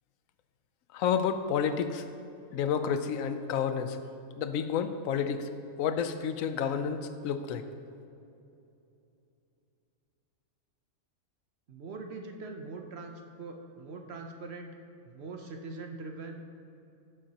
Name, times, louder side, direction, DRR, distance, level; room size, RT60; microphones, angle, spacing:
voice 1, 0.9-2.0 2.5-4.0 4.4-5.5 5.8-7.6, left 7 dB, 75° left, 9 dB, 1.0 m, -30 dB
voice 2, 11.7-14.7 15.0-16.5, right 3 dB, 55° right, 3 dB, 0.9 m, -42 dB
14.5 x 7.6 x 2.9 m, 2.7 s
omnidirectional pair, 1.5 m